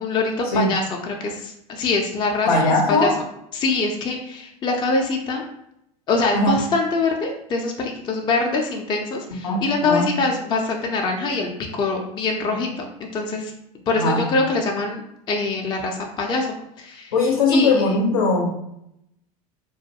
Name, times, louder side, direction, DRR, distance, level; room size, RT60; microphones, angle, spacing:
voice 1, 0.0-3.1 3.5-5.4 6.1-13.5 13.9-15.0 15.3-16.5 16.8-17.1 17.5-17.7, left 3 dB, 25° left, 1 dB, 0.4 m, -24 dB
voice 2, 2.5-3.1 6.3-6.6 9.4-10.1 14.0-14.2 17.1-18.5, left 3 dB, 70° left, 0 dB, 0.6 m, -19 dB
2.3 x 2.2 x 2.7 m, 0.80 s
hypercardioid pair, 85°, 19 cm